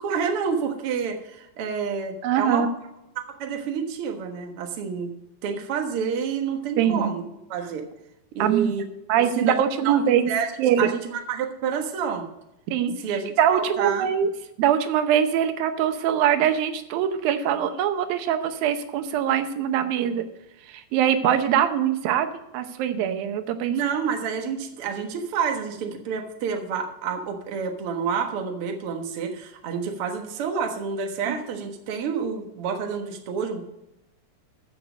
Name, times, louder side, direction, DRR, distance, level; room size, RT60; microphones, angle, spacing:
voice 1, 0.0-2.7 3.4-5.1 5.4-7.2 7.5-7.9 8.3-8.8 9.1-10.0 10.3-10.5 10.8-12.3 13.0-14.1 23.7-33.6, right 6 dB, 55° right, 4 dB, 1.7 m, -29 dB
voice 2, 2.2-2.7 6.8-7.2 8.4-8.7 9.1-10.3 10.6-10.9 12.7-13.0 13.4-14.3 14.6-20.3 20.7-22.3 22.5-23.7 31.3-31.4, right 9 dB, 90° right, 8 dB, 2.7 m, -22 dB
14.5 x 6.5 x 5.0 m, 0.86 s
omnidirectional pair, 4.0 m